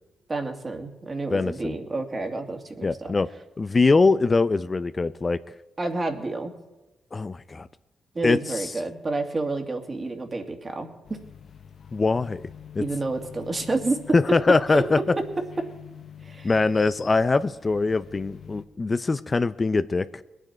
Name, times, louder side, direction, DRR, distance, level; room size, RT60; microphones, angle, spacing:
voice 1, 0.3-3.1 5.8-6.5 8.1-11.2 12.8-14.0 14.7-14.8 16.2-16.5, right 3 dB, 35° right, 4 dB, 2.3 m, -29 dB
voice 2, 1.3-1.8 2.8-3.3 3.6-5.4 7.1-7.7 8.2-8.7 11.9-12.4 12.8-12.9 14.1-15.0 16.4-20.2, left 3 dB, 35° left, 12 dB, 0.6 m, -22 dB
sound 1, 11.0-18.6, left 8 dB, 55° left, 1.0 m, -45 dB
22.0 x 9.1 x 4.4 m, 1.0 s
hypercardioid pair, 45°, 0 cm